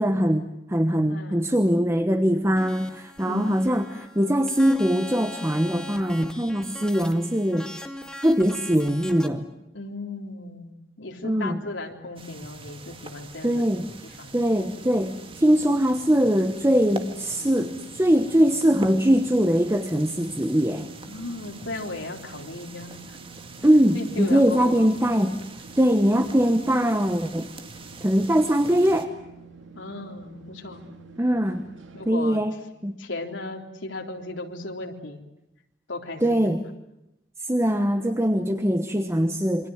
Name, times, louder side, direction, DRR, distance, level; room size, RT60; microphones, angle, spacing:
voice 1, 0.0-7.7 8.2-9.5 11.2-11.6 13.4-13.9 14.3-20.9 23.6-25.4 25.8-27.5 28.0-29.1 31.2-31.6 32.1-32.6 32.8-32.9 36.2-36.6 37.4-39.7, equal, 15° right, 8 dB, 1.2 m, -22 dB
voice 2, 1.1-1.4 3.3-3.7 9.7-10.7 11.0-13.7 14.2-14.4 21.0-23.2 23.9-24.8 29.8-30.8 31.9-32.4 33.0-35.2 35.9-36.6, left 2 dB, 80° left, 2 dB, 3.6 m, -36 dB
sound 1, 2.6-9.3, left 1 dB, 5° left, 1.9 m, -41 dB
sound 2, 12.2-29.1, right 3 dB, 30° right, 2.0 m, -43 dB
sound 3, 14.3-32.1, right 4 dB, 85° right, 2.2 m, -48 dB
28.0 x 24.0 x 8.0 m, 0.87 s
head